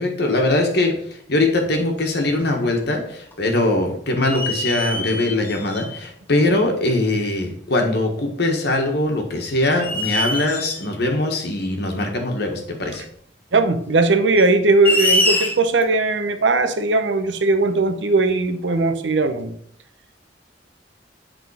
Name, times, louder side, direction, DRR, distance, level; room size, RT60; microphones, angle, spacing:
voice 1, 0.0-13.0, left 2 dB, 65° left, 2 dB, 1.5 m, -21 dB
sound 1, 1.6-1.7 2.3-3.0 3.3-3.4 4.2-6.1 7.1-7.2 9.0-9.3 9.8-10.9 12.7-12.8 14.3-15.8, left 1 dB, 10° left, 1.0 m, -24 dB
voice 2, 13.5-19.6, right 3 dB, 80° right, 8 dB, 0.8 m, -19 dB
8.1 x 3.7 x 4.8 m, 0.65 s
head